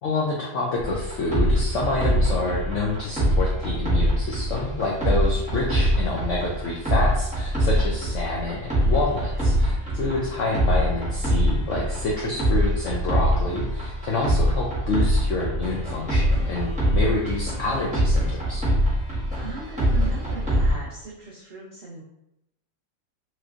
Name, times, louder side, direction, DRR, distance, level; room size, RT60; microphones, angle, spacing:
voice 1, 0.0-18.7, left 3 dB, 80° left, -3 dB, 0.6 m, -28 dB
sound 1, 0.8-20.7, equal, 5° right, 0.7 m, -23 dB
voice 2, 2.0-2.4 9.9-10.4 16.8-17.2 19.4-22.0, right 3 dB, 70° right, -5 dB, 0.6 m, -39 dB
3.1 x 3.0 x 2.4 m, 0.86 s
omnidirectional pair, 1.8 m